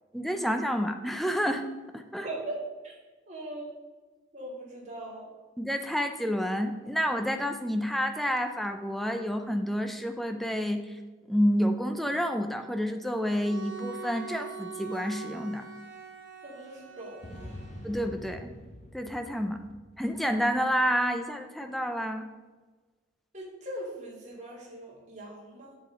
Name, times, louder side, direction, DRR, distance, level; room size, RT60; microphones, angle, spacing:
voice 1, 0.1-1.7 1.9-2.3 5.6-10.8 11.3-15.6 17.8-18.5 18.9-19.6 20.0-22.3, equal, ahead, 6 dB, 0.4 m, -29 dB
voice 2, 2.2-2.6 2.8-2.9 3.3-3.7 4.3-5.3 16.4-17.6 23.3-25.8, right 1 dB, 35° right, -3 dB, 1.9 m, -40 dB
Bowed string instrument, 13.2-18.2, right 6 dB, 80° right, 0.9 m, -43 dB
sound 1, 17.2-20.7, left 1 dB, 35° left, 0.7 m, -46 dB
7.7 x 6.8 x 3.8 m, 1.3 s
head